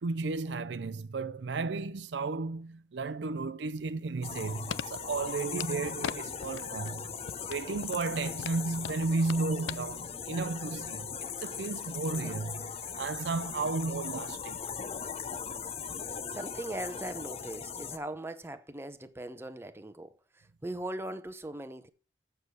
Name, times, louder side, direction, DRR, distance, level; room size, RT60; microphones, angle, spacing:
voice 1, 0.0-7.1 7.5-11.1 11.4-12.7 13.0-14.6, right 3 dB, 75° right, 0.5 m, -33 dB
sound 1, 3.8-6.2 6.4-7.0 7.3-9.8 10.1-10.2, left 7 dB, 85° left, 0.4 m, -39 dB
sound 2, 4.2-18.0, left 6 dB, 35° left, 0.6 m, -39 dB
voice 2, 16.3-21.9, right 1 dB, 15° right, 0.7 m, -40 dB
7.6 x 6.8 x 6.2 m
head